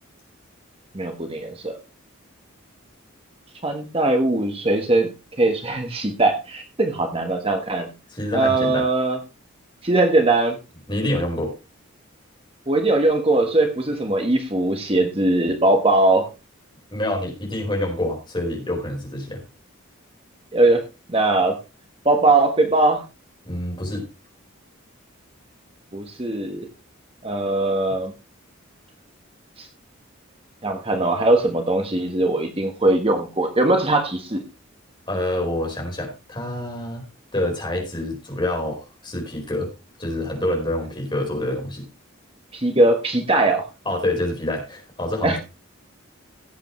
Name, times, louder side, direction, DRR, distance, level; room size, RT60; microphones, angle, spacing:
voice 1, 0.9-1.8 3.6-5.1 5.4-7.9 8.3-9.2 9.8-10.6 12.7-16.3 20.5-21.6 22.0-23.0 25.9-26.7 27.2-28.1 29.6-29.7 30.6-34.4 42.5-43.6 45.2-45.4, right 2 dB, 25° right, 4 dB, 1.3 m, -20 dB
voice 2, 8.1-8.9 10.9-11.5 16.9-19.4 23.4-24.0 35.1-37.0 37.3-39.7 40.0-41.9 43.8-45.4, left 1 dB, 20° left, 1 dB, 4.6 m, -27 dB
17.0 x 8.1 x 3.2 m, 0.28 s
head